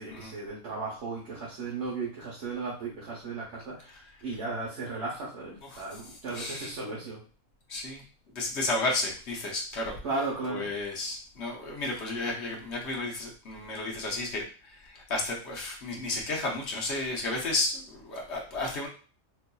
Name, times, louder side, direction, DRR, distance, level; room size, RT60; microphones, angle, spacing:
voice 1, 0.0-7.2 10.0-10.7, right 3 dB, 60° right, -4 dB, 1.1 m, -35 dB
voice 2, 5.6-6.7 7.7-8.0 8.3-9.9 10.5-18.9, left 2 dB, 55° left, -1 dB, 1.0 m, -33 dB
4.5 x 2.6 x 2.3 m, 0.37 s
omnidirectional pair, 1.4 m